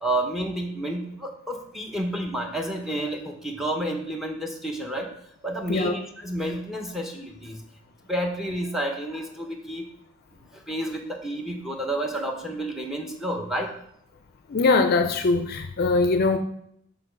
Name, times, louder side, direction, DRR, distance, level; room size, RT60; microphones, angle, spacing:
voice 1, 0.0-5.1 5.4-7.6 8.1-9.8 10.7-13.7, right 1 dB, ahead, 2 dB, 0.7 m, -30 dB
voice 2, 14.5-16.4, left 3 dB, 45° left, 6 dB, 0.4 m, -21 dB
6.8 x 3.9 x 5.0 m, 0.71 s
head